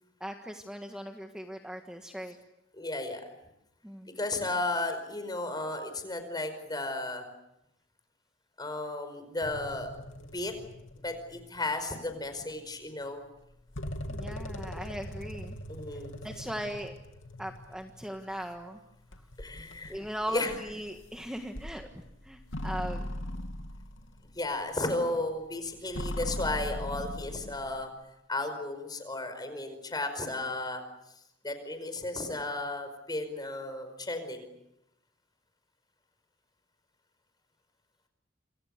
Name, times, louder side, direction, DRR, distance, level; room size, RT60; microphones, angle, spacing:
voice 1, 0.2-2.3 3.8-4.1 14.1-15.6 16.2-16.9 17.4-18.8 19.9-23.1, equal, 5° right, 3 dB, 1.6 m, -39 dB
voice 2, 2.7-3.2 4.2-7.3 8.6-9.9 10.2-10.5 11.0-13.2 15.7-16.1 19.4-20.0 20.3-20.5 24.4-27.9 28.3-30.8 31.4-34.5, left 2 dB, 20° left, 8 dB, 5.2 m, -34 dB
sound 1, 9.4-11.6 12.2-12.3 13.5-18.5 19.1-25.0 25.4-27.9, left 1 dB, 80° left, 2.8 m, -40 dB
27.5 x 27.5 x 6.7 m, 0.83 s
head